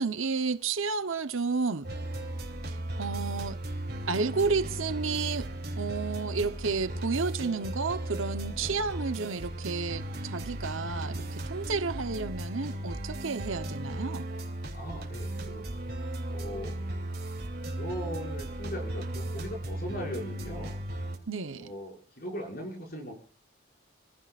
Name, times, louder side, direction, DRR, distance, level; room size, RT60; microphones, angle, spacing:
voice 1, 0.0-1.9 2.7-3.6 4.1-5.5 5.8-14.3 21.3-21.7, right 4 dB, 85° right, 1.0 m, -31 dB
sound 1, 1.8-21.2, right 1 dB, 50° right, 3.3 m, -36 dB
voice 2, 14.7-15.6 16.3-16.8 17.7-20.8 21.6-23.1, equal, 45° left, 6.3 m, -39 dB
29.5 x 15.5 x 2.5 m
head